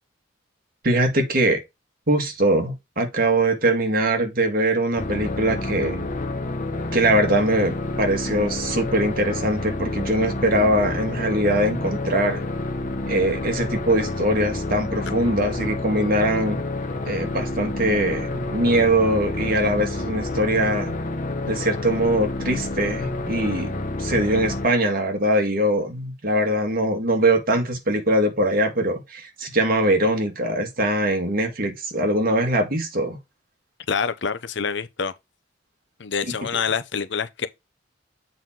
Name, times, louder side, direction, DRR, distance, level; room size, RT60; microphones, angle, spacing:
voice 1, 0.8-1.6 2.1-6.1 6.9-12.4 13.1-16.6 17.0-20.9 21.5-23.7 24.0-33.2, right 1 dB, 50° right, 2.1 m, -22 dB
sound 1, 5.0-24.7, left 2 dB, 45° left, 1.4 m, -29 dB
voice 2, 33.9-35.1 36.0-37.5, left 6 dB, 65° left, 0.8 m, -26 dB
7.7 x 4.4 x 3.7 m
head